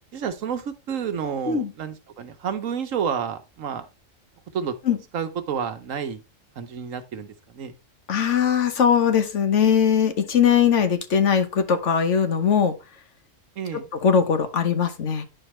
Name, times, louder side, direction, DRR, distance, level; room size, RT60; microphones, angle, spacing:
voice 1, 0.1-3.9 4.5-4.7 5.1-6.2 6.6-7.7 13.6-13.9, right 7 dB, 80° right, 1.3 m, -30 dB
voice 2, 8.1-12.7 13.9-15.2, left 7 dB, 65° left, 1.3 m, -20 dB
10.0 x 4.4 x 3.1 m
omnidirectional pair, 1.3 m